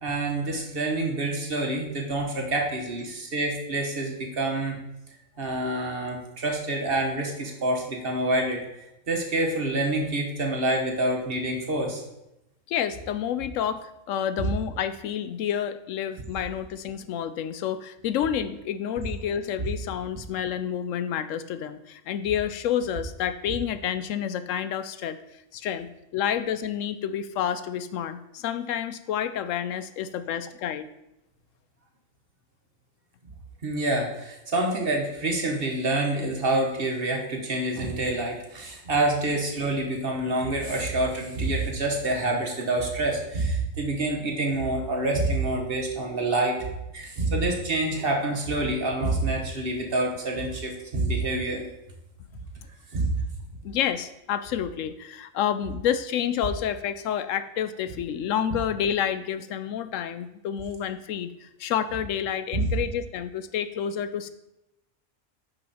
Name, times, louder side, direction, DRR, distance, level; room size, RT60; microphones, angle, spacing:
voice 1, 0.0-4.7 5.4-12.0 14.4-14.5 33.6-46.7 46.9-51.6 52.9-53.2 62.5-62.7, right 2 dB, 45° right, 1 dB, 1.5 m, -27 dB
voice 2, 12.7-25.2 25.5-25.9 26.1-30.9 53.6-64.3, left 9 dB, 80° left, 12 dB, 0.9 m, -29 dB
9.6 x 5.6 x 4.2 m, 0.88 s
omnidirectional pair, 1.3 m